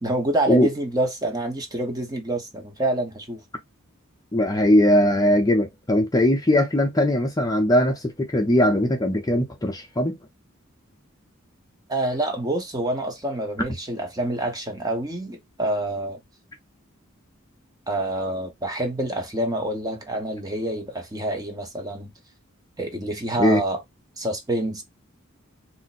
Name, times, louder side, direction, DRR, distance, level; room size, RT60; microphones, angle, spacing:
voice 1, 0.0-3.4 11.9-16.2 17.9-22.1 22.8-23.8 24.2-24.8, right 1 dB, 20° right, 0.7 m, -27 dB
voice 2, 4.3-10.2 23.4-23.6, left 1 dB, 15° left, 0.6 m, -20 dB
2.5 x 2.1 x 4.0 m
head